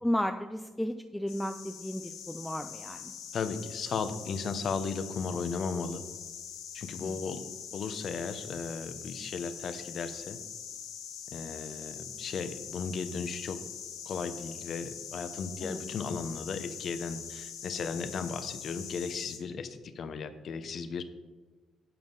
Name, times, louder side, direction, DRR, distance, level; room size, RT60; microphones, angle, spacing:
voice 1, 0.0-3.0 7.0-7.1 15.6-15.8, equal, 5° left, 6 dB, 0.5 m, -33 dB
sound 1, 1.3-19.4, left 8 dB, 90° left, 1.2 m, -43 dB
voice 2, 3.3-6.0 6.7-7.4 7.7-10.4 11.3-13.6 14.1-21.0, left 5 dB, 60° left, 11 dB, 0.9 m, -35 dB
10.5 x 7.2 x 4.0 m, 1.2 s
cardioid pair, 90°, 0 cm